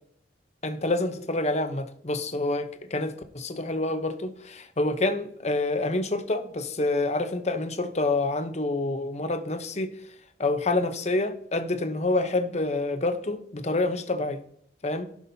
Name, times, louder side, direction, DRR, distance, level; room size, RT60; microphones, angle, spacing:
voice 1, 0.6-9.9 10.4-14.4 14.8-15.1, left 2 dB, 35° left, 0.9 m, -27 dB
15.0 x 6.0 x 2.8 m
head